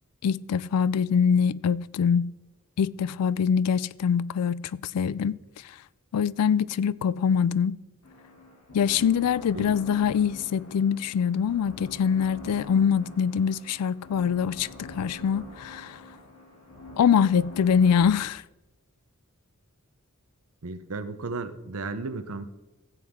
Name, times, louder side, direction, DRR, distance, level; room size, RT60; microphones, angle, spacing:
voice 1, 0.2-2.3 2.8-5.4 6.1-7.8 8.7-16.0 17.0-18.4, left 7 dB, 85° left, 0.3 m, -24 dB
sound 1, 8.0-18.0, left 2 dB, 70° left, 3.0 m, -45 dB
voice 2, 20.6-22.5, right 3 dB, 65° right, 0.8 m, -34 dB
15.0 x 7.9 x 3.6 m
head